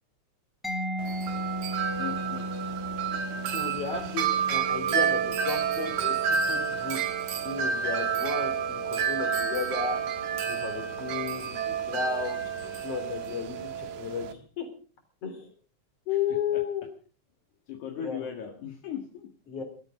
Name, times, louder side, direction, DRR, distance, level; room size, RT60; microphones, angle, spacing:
Mallet percussion, 0.6-8.2, equal, ahead, 1.6 m, -37 dB
Wind chime, 1.0-14.3, right 7 dB, 75° right, 3.0 m, -30 dB
voice 1, 2.0-2.5 17.7-19.3, left 9 dB, 75° left, 2 dB, 3.3 m, -37 dB
voice 2, 3.5-6.1 6.5-7.0 7.4-10.0 10.4-12.4 12.8-14.7 15.2-15.5 16.1-16.9 17.9-18.3 19.5-19.6, left 6 dB, 50° left, 6 dB, 4.8 m, -33 dB
20.5 x 13.5 x 5.1 m, 0.41 s
omnidirectional pair, 3.5 m